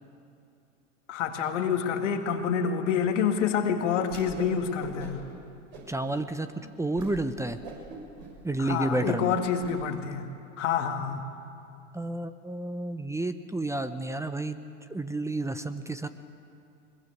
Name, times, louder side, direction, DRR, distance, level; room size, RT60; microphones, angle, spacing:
voice 1, 1.1-5.2 8.6-10.3 10.6-11.2, left 7 dB, 70° left, 5 dB, 2.2 m, -27 dB
Whoosh swoosh swish, 4.0-4.5 4.8-5.3 5.7-6.2 6.6-6.7 6.9-7.1 7.5-9.7, right 4 dB, 55° right, 6.7 m, -43 dB
voice 2, 5.9-6.5 6.8-7.6 8.4-9.4 11.9-14.6 14.9-16.1, right 2 dB, 10° right, 10 dB, 1.0 m, -30 dB
22.5 x 21.5 x 8.1 m, 2.6 s
figure-of-eight pair, 80°, 38 cm